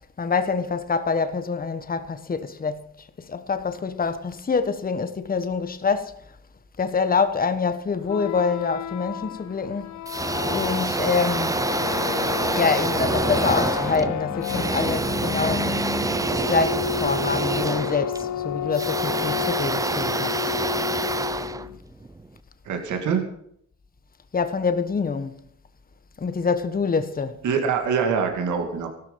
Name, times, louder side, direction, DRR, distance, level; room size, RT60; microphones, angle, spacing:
voice 1, 0.2-2.8 3.2-6.1 6.8-10.0 10.4-11.6 12.5-15.7 16.3-20.5 24.3-25.3 26.2-27.4, left 5 dB, 30° left, 1.3 m, -26 dB
sound 1, 8.0-21.8, left 10 dB, 70° left, 0.9 m, -31 dB
sound 2, 10.1-22.3, right 3 dB, 10° right, 0.6 m, -27 dB
voice 2, 22.7-23.2 27.4-28.9, right 6 dB, 75° right, 2.5 m, -24 dB
16.0 x 13.0 x 5.7 m
cardioid pair, 90°, 30 cm